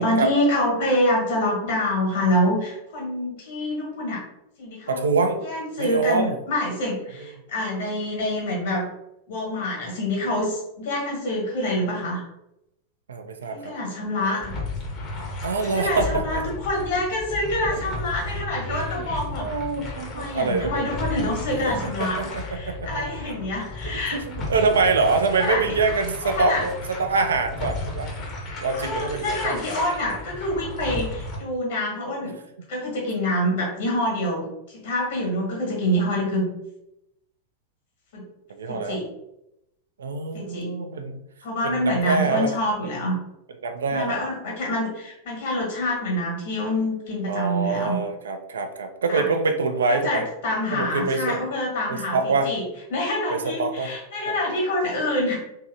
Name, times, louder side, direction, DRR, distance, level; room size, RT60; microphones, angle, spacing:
voice 1, 0.0-4.2 4.6-5.0 5.4-8.9 9.3-12.2 13.5-14.5 15.6-19.5 20.0-24.2 24.5-24.7 25.3-25.6 26.2-26.7 28.7-32.3 32.7-36.5 38.1-38.2 38.7-39.1 40.3-40.7 41.4-43.1 43.9-48.0 49.1-49.3 49.9-52.6 52.9-55.4, left 1 dB, 55° left, -1 dB, 1.2 m, -26 dB
voice 2, 4.9-5.4 5.8-6.4 7.2-7.3 13.1-13.7 14.2-14.4 15.4-16.4 19.0-19.1 19.4-20.8 21.6-21.7 22.0-22.2 22.7-22.8 23.3-23.4 24.1-26.7 27.0-28.1 28.6-29.4 38.5-39.0 40.0-41.2 41.6-42.5 43.6-44.2 47.3-50.2 50.7-51.4 51.9-52.5 53.3-53.9 54.3-54.4, right 4 dB, 70° right, 6 dB, 0.3 m, -25 dB
sound 1, 14.4-31.4, left 2 dB, 30° left, 0.7 m, -34 dB
2.9 x 2.6 x 2.5 m, 0.84 s
figure-of-eight pair, 90°, 0 cm